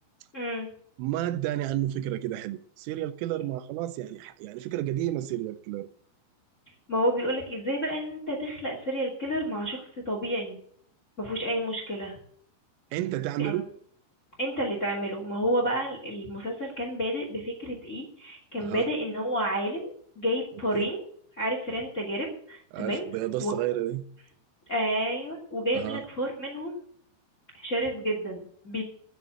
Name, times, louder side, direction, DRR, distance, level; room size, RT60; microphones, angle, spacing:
voice 1, 0.3-0.7 6.9-9.8 10.0-10.6 11.2-12.1 13.4-13.6 14.4-21.0 21.4-23.0 23.4-23.5 24.7-26.8 27.5-28.8, equal, 25° left, 1.8 m, -30 dB
voice 2, 1.0-5.9 12.9-13.7 18.6-18.9 20.7-20.9 22.7-24.0 25.7-26.0, right 14 dB, 80° right, 3.1 m, -31 dB
10.0 x 9.4 x 8.1 m
omnidirectional pair, 5.9 m